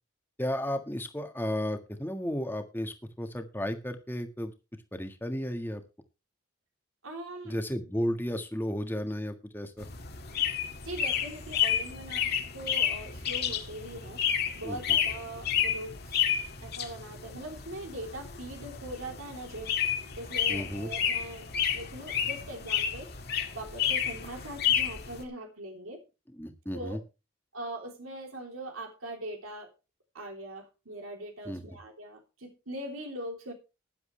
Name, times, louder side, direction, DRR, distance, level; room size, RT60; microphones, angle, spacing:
voice 1, 0.4-4.5 4.9-5.8 7.4-9.9 14.6-15.0 20.5-20.9 26.4-27.0 31.4-31.6, equal, 10° left, 6 dB, 1.6 m, -33 dB
voice 2, 7.0-7.5 10.8-14.3 14.5-16.2 16.6-19.7 20.2-21.5 21.7-23.1 23.5-26.0 26.7-27.0 27.5-29.7 30.1-33.5, right 1 dB, 85° right, 3 dB, 3.3 m, -41 dB
sound 1, 9.8-25.2, left 9 dB, 50° left, 2.0 m, -31 dB
15.5 x 10.5 x 3.3 m, 0.29 s
head